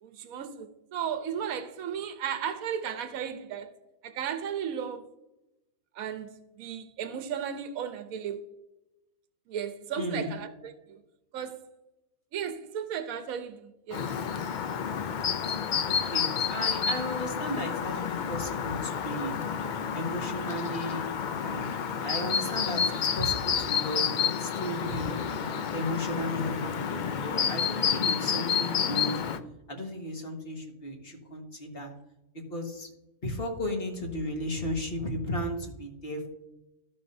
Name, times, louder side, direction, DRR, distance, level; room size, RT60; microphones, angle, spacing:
voice 1, 0.0-3.7 4.0-5.0 6.0-6.3 6.6-8.4 9.5-11.0 11.3-11.6 12.3-14.1, right 8 dB, 75° right, 1.2 m, -35 dB
voice 2, 10.0-10.3 15.8-19.4 19.9-25.2 25.7-29.2 29.7-31.9 32.5-32.9 33.2-36.3, left 1 dB, 40° left, 1.8 m, -35 dB
Chirp tweet, 13.9-29.4, left 7 dB, 90° left, 0.4 m, -30 dB
15.5 x 5.4 x 2.7 m
omnidirectional pair, 1.5 m